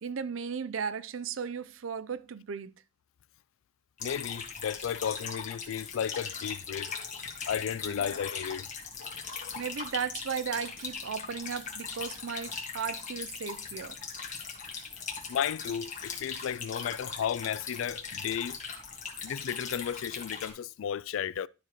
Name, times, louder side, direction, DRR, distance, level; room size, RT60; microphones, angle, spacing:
voice 1, 0.0-2.7 7.9-8.2 9.6-14.0, right 6 dB, 80° right, 0.5 m, -36 dB
voice 2, 4.0-8.7 9.0-9.6 15.3-18.6 19.2-21.5, left 8 dB, 85° left, 0.3 m, -34 dB
sound 1, 4.0-20.5, left 5 dB, 40° left, 1.6 m, -40 dB
12.0 x 5.0 x 3.0 m
head